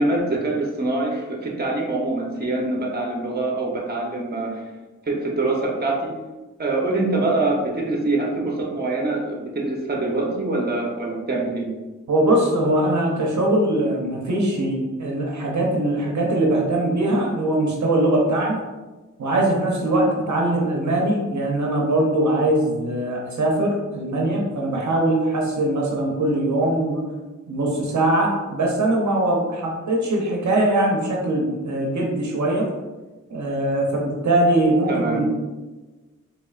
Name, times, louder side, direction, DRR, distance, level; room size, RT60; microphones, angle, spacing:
voice 1, 0.0-4.6 5.1-6.1 6.6-11.7 34.9-35.2, right 2 dB, 30° right, -1 dB, 0.8 m, -24 dB
voice 2, 12.1-18.6 19.2-27.0 27.5-32.7 33.3-35.3, right 1 dB, 65° right, -1 dB, 0.7 m, -21 dB
4.1 x 3.0 x 2.4 m, 1.2 s
cardioid pair, 65°, 31 cm